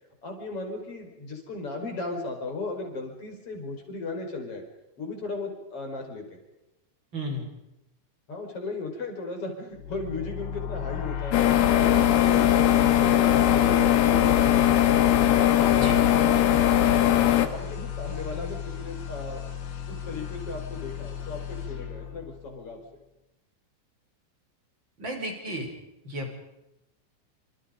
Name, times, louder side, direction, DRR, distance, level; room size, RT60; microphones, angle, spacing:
voice 1, 0.2-4.6 5.0-6.4 8.3-11.4 11.7-15.1 15.5-19.5 19.9-22.8, left 3 dB, 30° left, 3 dB, 6.1 m, -36 dB
voice 2, 7.1-7.4 15.7-16.0 25.0-25.7 26.0-26.4, equal, 25° right, 3 dB, 5.7 m, -33 dB
sound 1, 9.8-22.8, left 8 dB, 90° left, 5.1 m, -36 dB
sound 2, 11.3-17.5, left 11 dB, 70° left, 3.5 m, -20 dB
29.0 x 27.5 x 5.3 m, 0.89 s
omnidirectional pair, 5.2 m